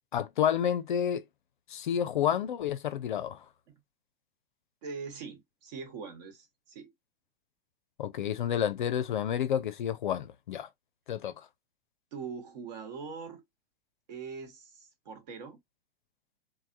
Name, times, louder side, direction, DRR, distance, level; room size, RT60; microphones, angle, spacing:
voice 1, 0.1-1.2 1.7-3.4 8.0-10.7 11.1-11.3, left 9 dB, 55° left, 0.4 m, -30 dB
voice 2, 4.8-6.9 12.1-13.4 14.1-15.6, right 5 dB, 45° right, 1.2 m, -42 dB
3.2 x 2.1 x 2.6 m
figure-of-eight pair, 105°, 29 cm